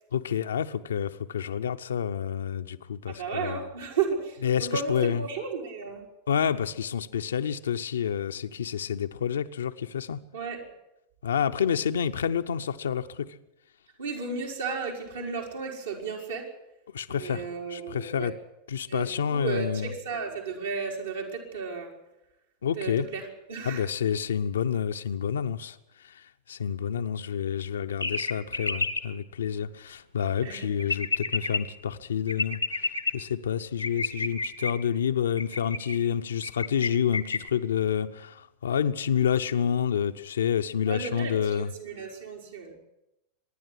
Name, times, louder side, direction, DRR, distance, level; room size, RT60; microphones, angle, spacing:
voice 1, 0.1-3.7 4.4-5.2 6.3-10.2 11.2-13.4 16.9-18.4 18.7-19.9 22.6-23.1 23.6-25.8 26.0-41.7, left 8 dB, 70° left, 0.8 m, -29 dB
voice 2, 3.1-6.0 10.3-10.6 14.0-16.5 17.1-18.3 18.9-21.9 22.8-23.9 30.4-30.7 40.9-41.4 41.8-42.8, right 5 dB, 70° right, 4.9 m, -33 dB
sound 1, 28.0-29.0 30.8-31.6 32.3-33.1 33.8-34.7 35.4-36.0 36.4-36.9 37.1-37.5, left 3 dB, 90° left, 1.3 m, -29 dB
24.5 x 11.0 x 9.9 m
figure-of-eight pair, 90°, 0 cm